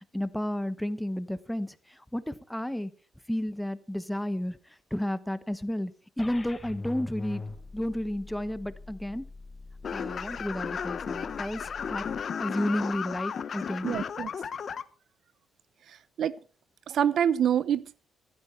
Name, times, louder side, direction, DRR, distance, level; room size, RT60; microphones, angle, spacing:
voice 1, 0.1-2.9 3.3-4.6 4.9-7.4 7.7-9.2 9.9-12.1 12.4-14.0, left 1 dB, 5° left, 14 dB, 1.0 m, -32 dB
sound 1, 6.2-12.2, left 3 dB, 20° left, 1.3 m, -43 dB
sound 2, 9.8-14.8, left 7 dB, 50° left, 1.0 m, -34 dB
voice 2, 13.8-14.3 16.2-16.3 16.9-18.1, right 9 dB, 65° right, 18 dB, 0.7 m, -26 dB
16.0 x 12.5 x 4.4 m, 0.39 s
cardioid pair, 90°, 0 cm